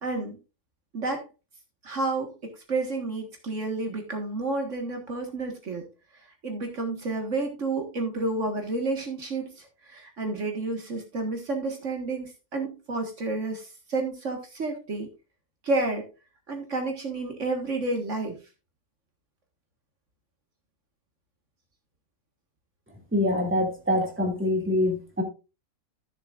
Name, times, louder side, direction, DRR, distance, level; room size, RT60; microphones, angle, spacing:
voice 1, 0.0-0.4 0.9-1.3 1.8-5.9 6.4-15.1 15.6-16.1 16.5-18.4, right 2 dB, 60° right, 3 dB, 1.9 m, -30 dB
voice 2, 23.1-25.2, left 1 dB, 10° right, 1 dB, 2.3 m, -25 dB
14.5 x 6.9 x 2.5 m, 0.30 s
omnidirectional pair, 1.4 m